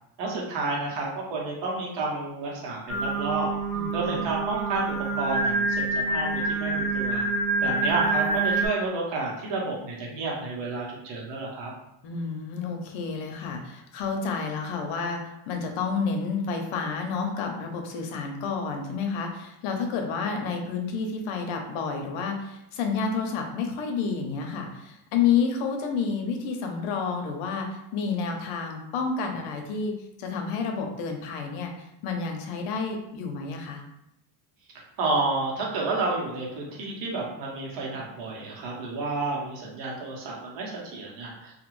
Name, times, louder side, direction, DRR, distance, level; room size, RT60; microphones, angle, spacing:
voice 1, 0.2-3.5 3.9-7.2 7.6-11.7 35.0-41.5, right 3 dB, 65° right, -2 dB, 1.0 m, -30 dB
Singing, 2.9-8.7, right 3 dB, 30° left, 1.0 m, -27 dB
voice 2, 3.7-4.2 12.0-33.8, left 5 dB, 80° left, 3 dB, 0.8 m, -30 dB
2.4 x 2.3 x 3.1 m, 0.82 s
cardioid pair, 135°, 47 cm